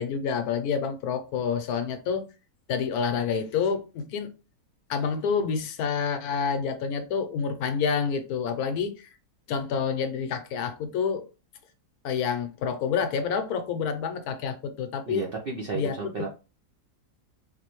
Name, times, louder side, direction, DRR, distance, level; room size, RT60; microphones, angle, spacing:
voice 1, 0.0-2.2 2.7-4.3 4.9-9.1 9.5-11.3 12.0-15.2 15.7-15.9, left 6 dB, 75° left, 1.1 m, -28 dB
voice 2, 15.1-16.3, right 4 dB, 65° right, 0.5 m, -32 dB
3.9 x 2.6 x 3.0 m
omnidirectional pair, 1.7 m